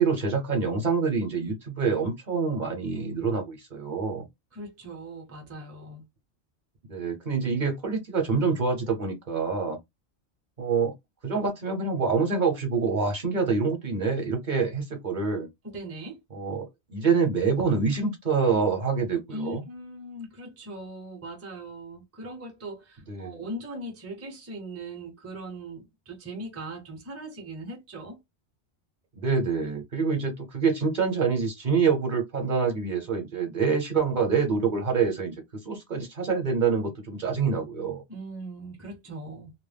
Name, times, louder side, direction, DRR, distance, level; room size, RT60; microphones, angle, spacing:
voice 1, 0.0-4.3 6.9-9.8 10.6-10.9 11.2-15.5 16.3-19.6 23.1-23.4 29.2-38.0, right 5 dB, 50° right, 0.8 m, -26 dB
voice 2, 4.5-6.0 15.6-16.2 19.3-28.2 38.1-39.5, right 1 dB, 20° right, 0.5 m, -39 dB
2.2 x 2.0 x 3.3 m
omnidirectional pair, 1.1 m